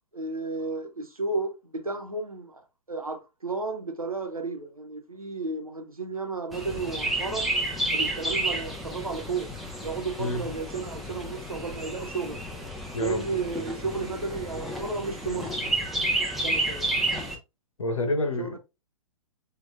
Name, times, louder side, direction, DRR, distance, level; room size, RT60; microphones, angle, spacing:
voice 1, 0.1-7.5 7.9-9.5 9.8-12.4 13.0-15.6 16.4-16.9 18.4-18.6, right 3 dB, 85° right, 1.1 m, -33 dB
Chirp tweet, 6.5-17.3, right 1 dB, ahead, 0.8 m, -31 dB
voice 2, 12.9-13.4 17.8-18.6, left 1 dB, 65° left, 1.0 m, -28 dB
7.5 x 2.6 x 2.5 m
figure-of-eight pair, 120°, 18 cm